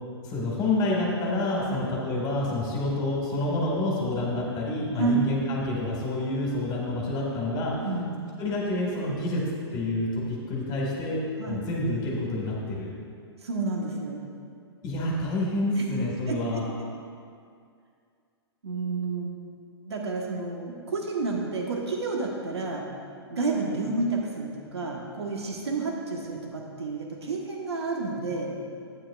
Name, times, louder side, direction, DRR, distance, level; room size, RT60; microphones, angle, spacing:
voice 1, 0.2-7.8 8.4-12.9 14.8-16.7, left 2 dB, 30° left, -3 dB, 1.9 m, -28 dB
voice 2, 7.8-8.3 11.4-11.7 13.4-14.2 15.8-15.9 16.3-16.4 18.6-19.3 19.8-22.9 23.3-28.5, right 3 dB, 75° right, 0 dB, 1.3 m, -30 dB
11.5 x 9.2 x 2.4 m, 2.3 s
hypercardioid pair, 115°, 14 cm